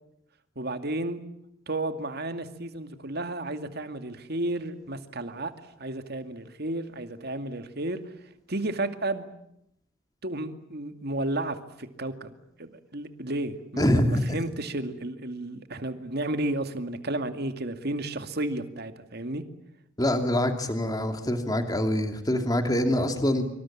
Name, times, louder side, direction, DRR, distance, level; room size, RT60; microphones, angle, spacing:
voice 1, 0.6-1.2 1.7-5.5 5.8-8.0 8.5-9.3 10.2-12.3 12.6-19.4, right 2 dB, 55° right, 8 dB, 2.3 m, -32 dB
voice 2, 13.8-14.4 20.0-23.4, left 1 dB, 20° left, 6 dB, 2.6 m, -25 dB
26.0 x 25.0 x 8.8 m, 0.77 s
head